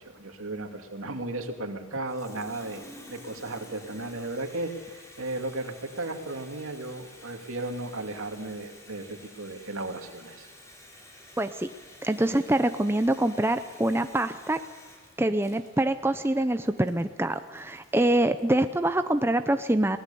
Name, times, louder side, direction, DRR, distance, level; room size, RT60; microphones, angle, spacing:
voice 1, 0.0-2.8 3.1-10.5, right 2 dB, 80° right, 5 dB, 2.5 m, -35 dB
Water tap faucet, 1.9-18.8, left 1 dB, 15° left, 3.3 m, -51 dB
voice 2, 11.4-11.7 12.0-14.6 15.2-20.0, right 1 dB, 10° right, 9 dB, 0.6 m, -25 dB
23.0 x 18.5 x 7.0 m, 1.3 s
head